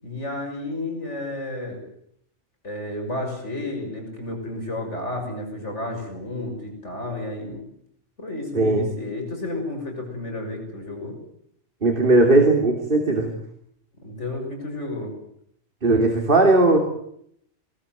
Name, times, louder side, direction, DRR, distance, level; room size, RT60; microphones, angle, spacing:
voice 1, 0.0-1.8 2.6-7.6 8.2-11.2 14.0-15.1, left 2 dB, 80° left, 2 dB, 6.8 m, -31 dB
voice 2, 11.8-13.3 15.8-16.8, right 2 dB, 45° right, 2 dB, 3.2 m, -17 dB
22.5 x 20.0 x 9.1 m, 0.71 s
omnidirectional pair, 1.2 m